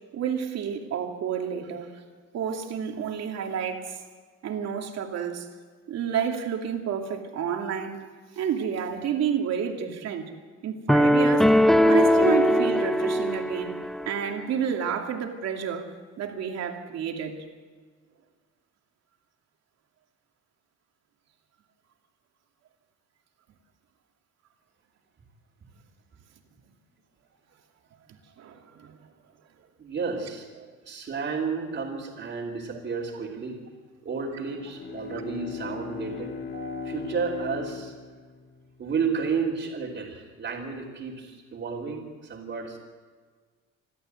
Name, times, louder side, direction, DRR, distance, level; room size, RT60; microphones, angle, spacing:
voice 1, 0.1-1.9 2.3-4.0 4.4-5.5 5.9-8.1 8.4-10.3 10.6-11.5 11.8-13.8 14.1-15.8 16.2-17.4 28.4-28.9, right 7 dB, 60° right, 2.6 m, -30 dB
sound 1, 10.9-14.1, equal, ahead, 0.5 m, -20 dB
voice 2, 29.8-30.5 30.8-33.6 34.0-37.9 38.8-42.8, right 5 dB, 35° right, 3.2 m, -32 dB
Bowed string instrument, 34.3-39.1, left 6 dB, 40° left, 1.4 m, -38 dB
27.0 x 12.5 x 7.9 m
cardioid pair, 145°, 30 cm